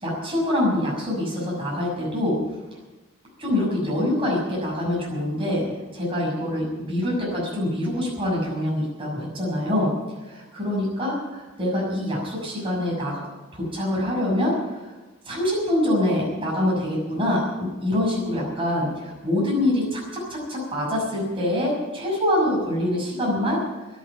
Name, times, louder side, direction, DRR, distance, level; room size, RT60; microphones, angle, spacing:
voice 1, 0.0-2.4 3.4-5.7 5.9-9.9 10.2-13.2 13.5-14.9 15.2-23.6, left 1 dB, 25° right, -4 dB, 6.5 m, -25 dB
13.5 x 11.0 x 9.2 m, 1.2 s
head